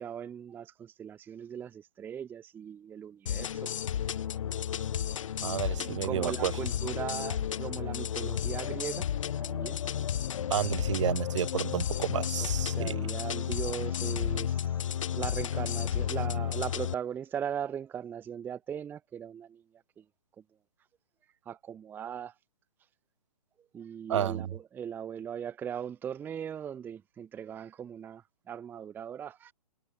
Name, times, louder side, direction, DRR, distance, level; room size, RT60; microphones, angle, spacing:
voice 1, 0.0-3.7 5.8-9.1 9.4-9.8 12.7-14.7 15.1-19.6 21.5-22.3 23.7-28.2 28.5-29.5, right 8 dB, 10° right, 0.7 m, -39 dB
sound 1, 3.3-16.9, left 9 dB, 55° left, 0.8 m, -32 dB
voice 2, 5.4-6.5 10.5-13.0 24.1-24.5, right 10 dB, 50° right, 1.0 m, -31 dB
figure-of-eight pair, 125°, 20 cm